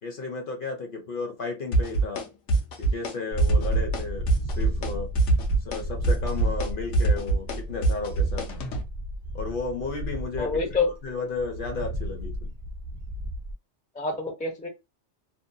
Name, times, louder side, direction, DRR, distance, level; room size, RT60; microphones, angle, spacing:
voice 1, 0.0-2.3 2.8-4.3 4.5-5.2 5.6-8.5 9.3-10.6 11.0-12.5, left 3 dB, 55° left, 0.7 m, -33 dB
sound 1, 1.7-2.2 2.5-3.1 3.4-4.0 4.3-4.9 5.2-8.8, right 3 dB, 85° left, 1.0 m, -23 dB
sound 2, 3.3-13.5, equal, 55° right, 0.7 m, -33 dB
voice 2, 10.4-10.9 13.9-14.7, left 4 dB, 10° left, 0.3 m, -27 dB
2.7 x 2.1 x 2.6 m
omnidirectional pair, 1.2 m